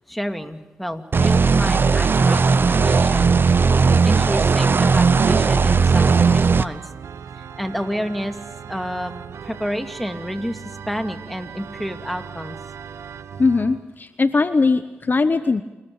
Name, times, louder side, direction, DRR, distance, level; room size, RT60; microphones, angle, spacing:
voice 1, 0.0-3.6 4.0-6.9 7.3-8.4 8.7-9.1 9.4-12.6, equal, ahead, 6 dB, 2.5 m, -30 dB
sound 1, 1.1-6.6, right 5 dB, 50° right, 0.8 m, -17 dB
Organ, 4.7-13.8, right 7 dB, 75° right, 1.1 m, -38 dB
voice 2, 13.4-15.6, left 3 dB, 45° left, 11 dB, 1.1 m, -20 dB
29.0 x 14.5 x 8.8 m, 1.1 s
cardioid pair, 45°, 5 cm